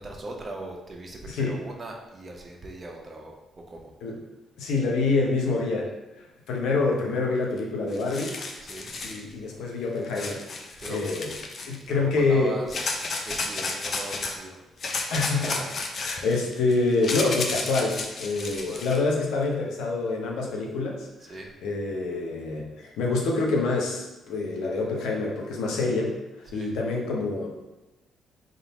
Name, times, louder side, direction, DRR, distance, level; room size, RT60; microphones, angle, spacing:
voice 1, 0.0-3.9 8.6-8.9 10.8-11.3 11.9-13.0 13.2-14.6 18.4-18.9 21.2-21.5 26.4-26.7, right 2 dB, 30° right, 0 dB, 0.8 m, -39 dB
voice 2, 1.3-1.6 4.0-4.1 4.6-5.9 6.5-8.3 9.0-10.4 10.9-11.3 11.7-12.6 15.1-21.3 21.6-27.6, left 3 dB, 85° left, -1 dB, 0.8 m, -26 dB
sound 1, 7.6-7.7 7.9-9.2 10.1-11.8 12.7-14.3 14.8-19.0, left 3 dB, 50° left, 0.6 m, -32 dB
3.7 x 2.6 x 4.0 m, 1.0 s
cardioid pair, 90°, 0 cm